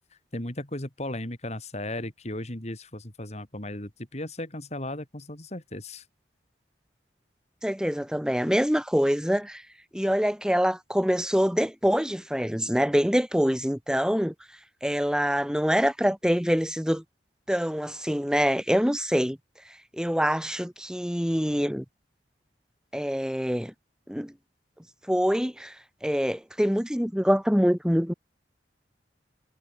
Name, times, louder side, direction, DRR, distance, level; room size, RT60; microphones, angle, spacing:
voice 1, 0.3-6.0, left 1 dB, 40° left, 3.1 m, -36 dB
voice 2, 7.6-9.6 9.9-14.3 14.8-17.0 17.5-19.4 19.9-21.8 22.9-23.7 24.1-24.3 25.1-25.7 26.0-28.1, equal, 5° right, 2.6 m, -25 dB
head